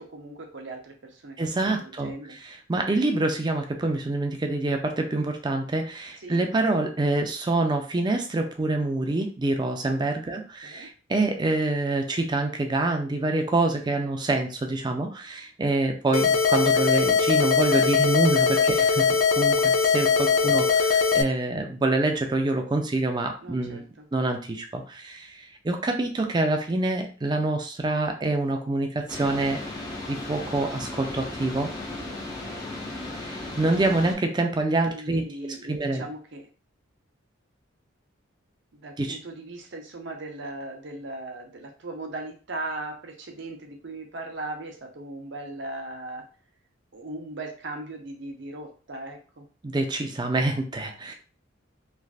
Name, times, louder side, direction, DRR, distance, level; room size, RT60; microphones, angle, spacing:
voice 1, 0.0-2.4 6.2-6.4 10.6-10.9 18.7-18.8 20.5-20.6 23.4-24.0 32.1-32.7 34.9-36.5 38.7-46.2 46.9-49.5, right 2 dB, 60° right, 3 dB, 0.7 m, -38 dB
voice 2, 1.4-19.1 19.4-23.8 24.1-29.6 30.1-31.7 33.1-35.2 35.6-36.0 39.0-39.2 49.6-51.1, right 2 dB, 20° right, 4 dB, 0.4 m, -26 dB
sound 1, 16.1-21.2, left 5 dB, 75° left, 0.4 m, -21 dB
sound 2, 29.1-34.1, left 2 dB, 20° left, 0.8 m, -36 dB
3.2 x 2.5 x 2.4 m, 0.38 s
head